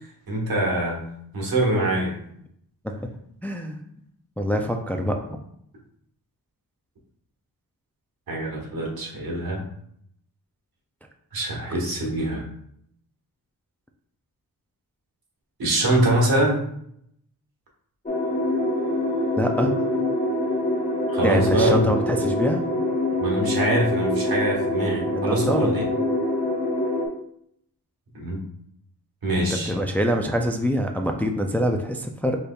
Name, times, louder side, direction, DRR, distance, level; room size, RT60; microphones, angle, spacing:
voice 1, 0.3-1.0 1.3-2.2 8.3-9.7 11.3-12.5 15.6-16.6 21.1-21.8 23.2-25.8 28.1-28.4 29.2-29.7, right 1 dB, 80° right, -2 dB, 1.4 m, -24 dB
voice 2, 3.4-3.8 4.4-5.2 19.4-19.7 21.2-22.6 25.1-25.7 29.4-32.4, equal, 5° left, 3 dB, 0.3 m, -24 dB
sound 1, 18.1-27.1, left 1 dB, 25° left, 0.8 m, -25 dB
5.1 x 4.1 x 2.3 m, 0.70 s
wide cardioid pair, 140°, 35 cm